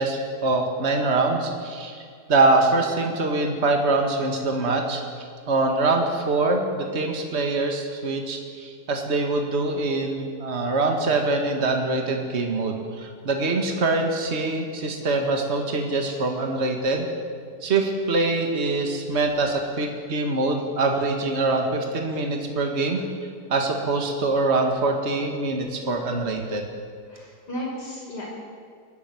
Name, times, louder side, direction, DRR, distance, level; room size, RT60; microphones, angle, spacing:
voice 1, 0.0-5.0 5.5-17.1 17.6-23.0 23.5-26.6, right 3 dB, 40° right, 2 dB, 2.1 m, -24 dB
voice 2, 27.1-28.3, equal, 90° left, -3 dB, 6.6 m, -34 dB
22.5 x 12.5 x 9.7 m, 2.2 s
omnidirectional pair, 1.8 m